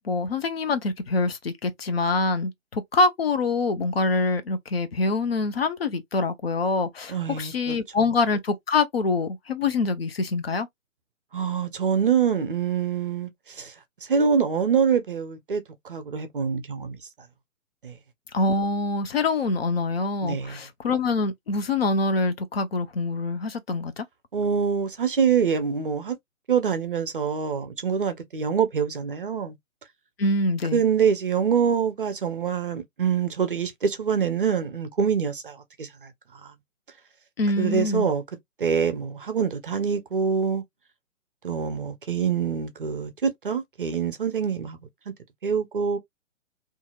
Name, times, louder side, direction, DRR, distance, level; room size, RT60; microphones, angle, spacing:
voice 1, 0.0-10.7 18.3-24.0 30.2-30.8 37.4-38.1, left 3 dB, 45° left, 0.6 m, -25 dB
voice 2, 7.1-7.8 11.3-13.7 14.0-17.0 17.8-18.0 20.2-20.6 24.3-26.2 26.5-29.5 30.7-36.1 36.4-36.5 37.6-38.2 38.6-40.6 41.4-44.8 45.4-46.0, right 6 dB, 40° right, 0.5 m, -25 dB
2.7 x 2.5 x 2.3 m
figure-of-eight pair, 130°, 41 cm